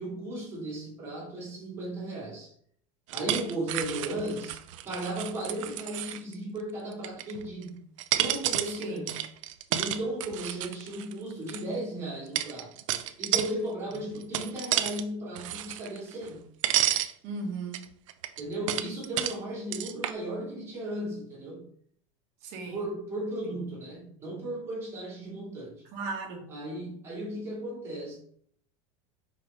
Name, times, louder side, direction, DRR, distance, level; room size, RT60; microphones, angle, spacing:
voice 1, 0.0-2.5 3.1-7.8 8.2-9.2 9.7-12.7 13.2-16.4 18.4-21.6 22.7-25.8 26.5-28.2, right 1 dB, 15° right, -6 dB, 2.6 m, -35 dB
sound 1, 3.1-6.3 6.9-7.6 8.0-11.6 12.4-13.5 13.9-15.0 15.4-16.4 16.6-17.1 17.7-19.4 19.7-20.1, right 13 dB, 80° right, 0.6 m, -31 dB
voice 2, 13.8-14.1 17.2-17.9 22.4-22.8 25.9-26.5, right 3 dB, 40° right, 1 dB, 1.6 m, -37 dB
5.5 x 4.9 x 4.2 m, 0.63 s
supercardioid pair, 175°, 16 cm